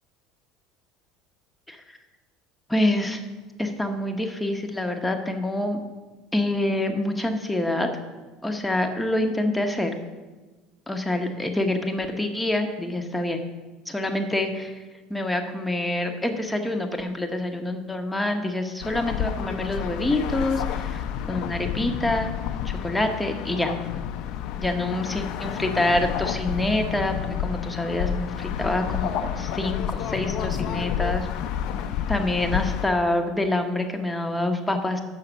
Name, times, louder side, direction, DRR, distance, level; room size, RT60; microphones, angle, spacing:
voice 1, 2.7-3.2 3.6-5.8 6.3-7.9 8.4-9.9 10.9-13.4 13.9-14.8 15.1-22.3 22.6-23.7 24.6-31.3 32.1-35.0, left 1 dB, 5° left, 4 dB, 1.0 m, -26 dB
sound 1, 18.8-32.9, left 9 dB, 65° left, 0.6 m, -30 dB
6.6 x 5.8 x 7.3 m, 1.3 s
supercardioid pair, 90°, 0 cm